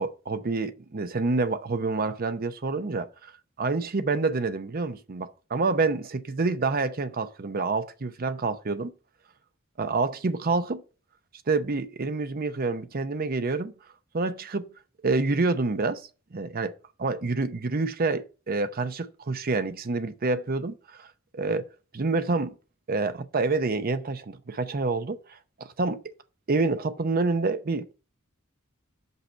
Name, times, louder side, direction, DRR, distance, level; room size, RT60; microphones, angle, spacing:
voice 1, 0.0-3.3 3.6-8.9 9.8-10.8 11.5-13.7 14.1-14.7 15.0-16.7 17.0-21.1 21.3-21.7 21.9-22.5 22.9-25.2 25.8-26.0 26.5-27.9, right 3 dB, 45° right, 0.7 m, -27 dB
5.8 x 5.5 x 6.4 m
head